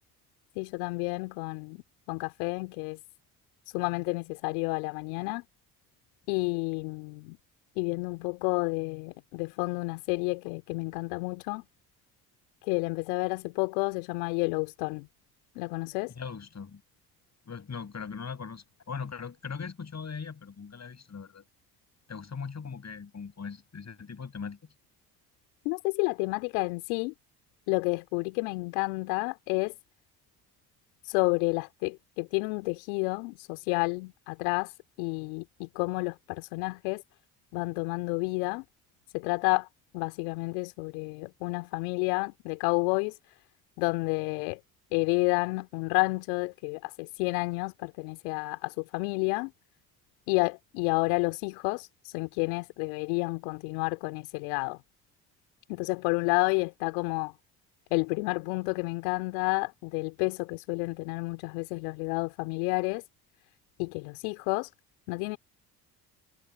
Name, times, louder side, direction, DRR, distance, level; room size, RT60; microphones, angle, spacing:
voice 1, 0.5-1.8 2.1-3.0 3.7-5.4 6.3-7.4 7.8-11.6 12.6-15.1 15.5-16.1 25.6-27.1 27.7-29.7 31.1-34.7 35.0-37.0 37.5-38.6 39.1-39.7 39.9-43.1 43.8-44.6 44.9-49.5 50.3-54.8 55.7-57.3 57.9-63.0 63.8-64.7 65.1-65.4, left 31 dB, 75° left, 3.1 m, -30 dB
voice 2, 16.2-16.8 17.4-21.4 22.1-24.6, left 5 dB, 35° left, 6.7 m, -40 dB
hypercardioid pair, 50°, 46 cm